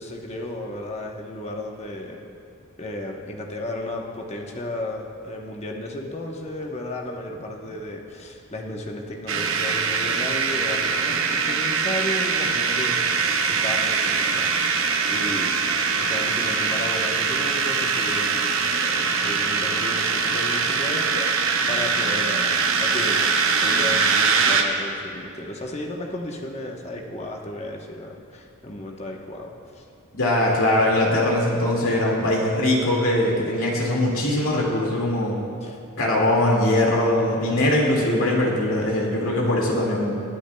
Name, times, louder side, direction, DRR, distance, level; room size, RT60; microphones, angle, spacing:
voice 1, 0.0-2.2 2.8-14.7 15.1-15.6 15.9-22.5 22.8-23.3 23.6-29.8 35.6-36.3, left 1 dB, 30° left, 1 dB, 0.9 m, -34 dB
sound 1, 9.3-24.6, right 5 dB, 60° right, 0.8 m, -22 dB
voice 2, 30.1-35.4 36.0-40.2, left 1 dB, 75° left, -2 dB, 2.1 m, -21 dB
20.5 x 10.0 x 2.3 m, 2.6 s
head